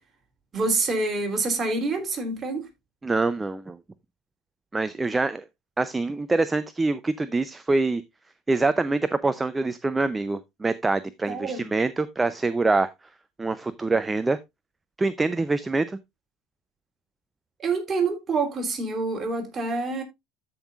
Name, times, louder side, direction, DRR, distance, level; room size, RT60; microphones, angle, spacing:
voice 1, 0.5-2.7 11.3-11.7 17.6-20.0, right 3 dB, 30° right, 3.3 m, -27 dB
voice 2, 3.0-3.8 4.7-5.4 5.8-8.0 8.5-12.9 13.4-14.4 15.0-16.0, right 3 dB, 15° right, 0.6 m, -25 dB
13.5 x 5.6 x 2.4 m
hypercardioid pair, 80°, 0 cm